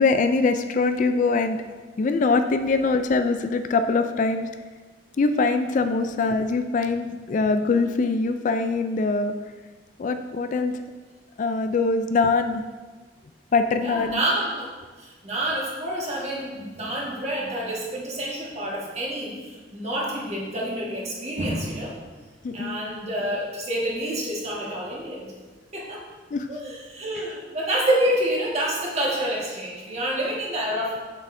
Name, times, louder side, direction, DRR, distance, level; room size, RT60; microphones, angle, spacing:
voice 1, 0.0-1.6 2.0-4.5 5.2-9.3 10.0-10.8 11.4-12.6 13.5-14.2 22.4-22.8 26.3-26.5, left 3 dB, 45° left, 8 dB, 0.3 m, -23 dB
voice 2, 13.7-14.7 15.0-22.0 22.5-25.3 25.7-26.0 26.5-31.0, right 1 dB, 35° right, -4 dB, 1.6 m, -28 dB
7.5 x 7.0 x 2.6 m, 1.4 s
head